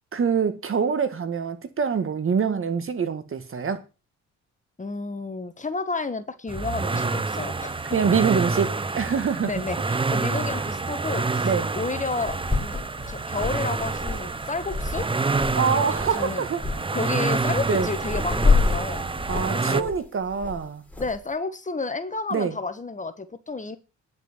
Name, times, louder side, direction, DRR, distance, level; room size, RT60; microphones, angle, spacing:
voice 1, 0.1-3.8 7.9-9.5 11.4-11.7 15.6-16.6 17.7-17.9 19.3-20.8 22.3-22.5, right 6 dB, 45° right, 2.0 m, -25 dB
voice 2, 4.8-7.9 9.4-15.1 16.1-16.4 16.7-19.1 19.5-19.9 21.0-23.8, left 3 dB, 25° left, 1.5 m, -31 dB
sound 1, 6.5-19.8, right 3 dB, 15° right, 0.8 m, -27 dB
sound 2, 9.7-9.8 11.6-11.7 12.1-15.6 15.9-16.2 16.6-16.8 17.3-21.2, left 4 dB, 5° left, 3.9 m, -27 dB
10.5 x 6.2 x 8.2 m
cardioid pair, 90°, 30 cm